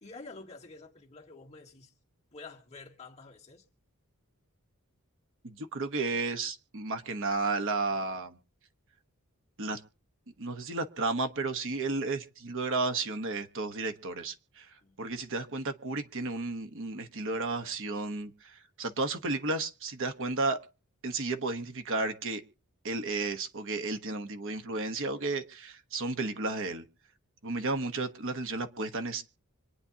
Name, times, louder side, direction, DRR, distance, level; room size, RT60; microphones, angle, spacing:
voice 1, 0.0-1.9 2.3-3.6 14.8-14.9, left 3 dB, 30° left, 1.7 m, -48 dB
voice 2, 5.4-8.4 9.6-9.8 10.4-14.7 15.0-20.6 21.0-22.4 22.8-26.8 27.4-29.2, right 3 dB, 60° right, 1.1 m, -33 dB
26.0 x 9.7 x 2.8 m
head